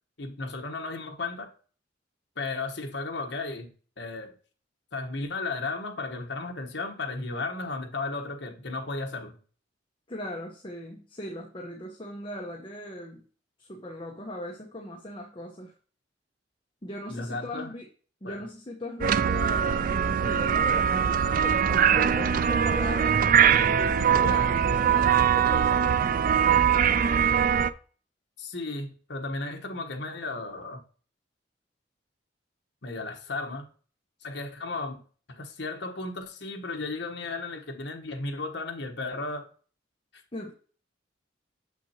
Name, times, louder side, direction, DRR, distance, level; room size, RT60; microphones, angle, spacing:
voice 1, 0.2-1.5 2.4-3.7 4.0-4.3 4.9-9.4 17.1-17.7 18.2-18.4 28.4-30.8 32.8-33.7 34.2-35.0 35.3-39.5, left 3 dB, 70° left, 3 dB, 1.2 m, -34 dB
voice 2, 10.1-13.2 13.6-15.7 16.8-17.8 18.2-23.2 23.5-26.7 40.3-40.5, left 1 dB, 30° left, -1 dB, 1.1 m, -38 dB
sound 1, 19.0-27.7, right 8 dB, 50° right, 0.4 m, -22 dB
7.1 x 6.0 x 2.8 m, 0.40 s
head